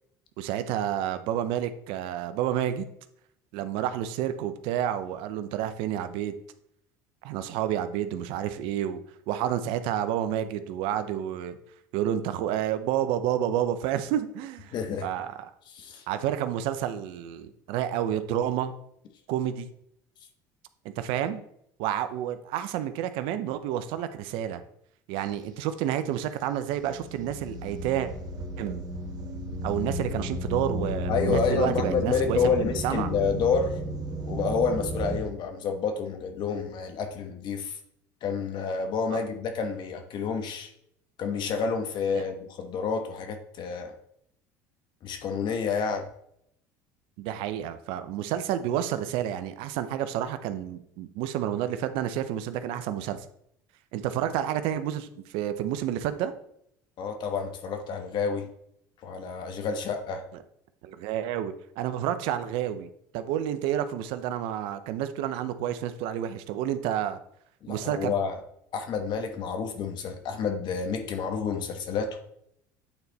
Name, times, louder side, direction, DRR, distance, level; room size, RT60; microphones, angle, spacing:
voice 1, 0.4-2.9 3.5-6.3 7.2-9.0 9.3-11.6 11.9-14.7 15.0-15.5 16.1-18.7 19.3-19.7 20.8-21.4 21.8-24.6 25.1-28.1 28.6-28.8 29.6-33.1 39.1-39.2 42.1-42.2 47.2-53.3 53.9-56.3 60.8-67.2 67.7-68.2, right 10 dB, 70° right, 11 dB, 0.7 m, -30 dB
voice 2, 14.7-15.0 15.7-16.0 31.1-33.7 34.3-37.8 38.2-40.7 41.2-43.9 45.0-46.0 57.0-58.5 59.0-60.2 67.6-68.4 68.7-72.2, left 5 dB, 55° left, 5 dB, 1.3 m, -29 dB
sound 1, 26.6-35.2, right 1 dB, 45° right, 1.4 m, -33 dB
8.8 x 4.2 x 4.0 m, 0.73 s
supercardioid pair, 85°, 9 cm